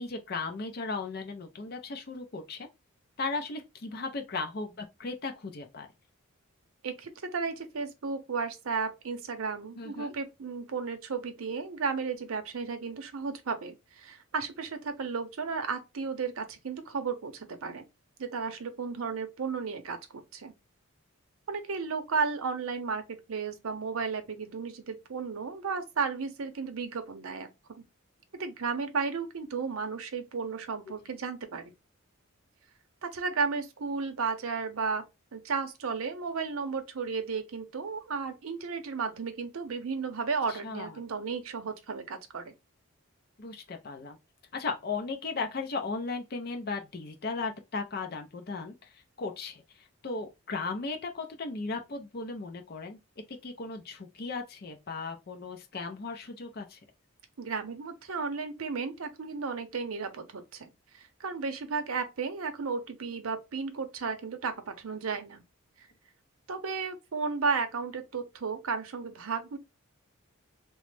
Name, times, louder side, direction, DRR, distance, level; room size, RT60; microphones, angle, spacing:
voice 1, 0.0-2.7 3.2-5.9 9.8-10.1 40.5-41.0 43.4-44.2 44.5-49.6 50.0-53.0 53.3-56.8, left 4 dB, 45° left, 0.5 m, -36 dB
voice 2, 6.8-17.8 18.2-20.5 21.5-27.5 27.8-27.9 28.4-31.7 33.0-35.0 35.3-42.5 57.4-65.4 65.8-65.9 66.5-69.6, right 5 dB, 75° right, 0.6 m, -34 dB
3.0 x 2.0 x 3.2 m
head